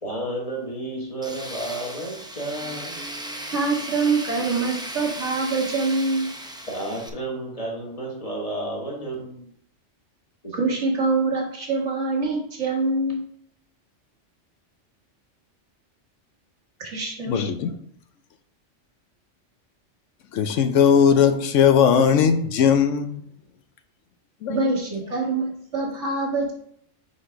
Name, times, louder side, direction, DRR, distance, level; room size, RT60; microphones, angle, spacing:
voice 1, 0.0-3.0 6.7-9.5 10.4-10.7, right 1 dB, 30° left, -2 dB, 1.5 m, -32 dB
Tools, 1.2-7.1, right 1 dB, 5° right, 0.3 m, -36 dB
voice 2, 3.5-6.3 10.5-13.2 16.8-17.4 24.5-26.5, right 3 dB, 75° right, -1 dB, 1.8 m, -24 dB
voice 3, 17.3-17.8 20.3-23.2 24.4-24.7, left 7 dB, 85° left, 9 dB, 1.0 m, -19 dB
5.3 x 4.0 x 4.9 m, 0.66 s
omnidirectional pair, 1.2 m